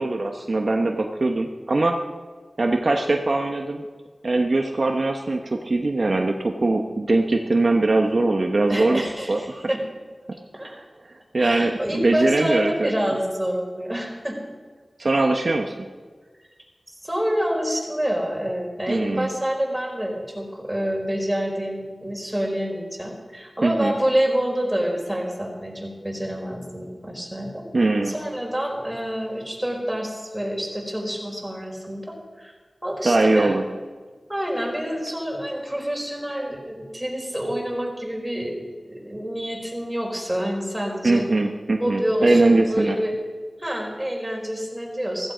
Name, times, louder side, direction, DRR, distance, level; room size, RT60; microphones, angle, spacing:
voice 1, 0.0-2.0 2.6-3.8 4.2-9.0 9.3-9.6 10.6-10.8 11.3-12.9 15.0-15.7 18.9-19.3 23.6-23.9 27.7-28.1 33.0-33.7 41.0-43.0, right 2 dB, 65° right, 3 dB, 1.0 m, -21 dB
voice 2, 8.7-9.8 10.5-10.7 11.4-14.4 17.0-27.7 28.1-32.5 32.8-33.6 34.3-38.6 38.8-41.3 41.8-43.1 43.6-45.3, equal, 10° right, 0 dB, 4.5 m, -27 dB
15.5 x 15.0 x 5.1 m, 1.5 s
wide cardioid pair, 55°, 0 cm